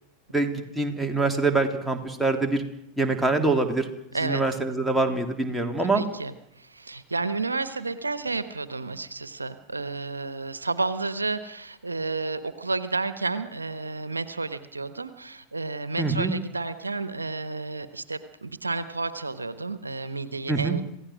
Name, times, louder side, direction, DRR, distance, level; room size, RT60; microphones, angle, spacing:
voice 1, 0.3-2.6 3.0-3.9 4.2-6.0 16.0-16.3 20.5-20.8, right 3 dB, 5° right, 2 dB, 3.4 m, -24 dB
voice 2, 5.9-20.8, right 3 dB, 85° right, 13 dB, 1.1 m, -31 dB
27.0 x 16.5 x 6.4 m, 0.78 s
figure-of-eight pair, 85°, 0 cm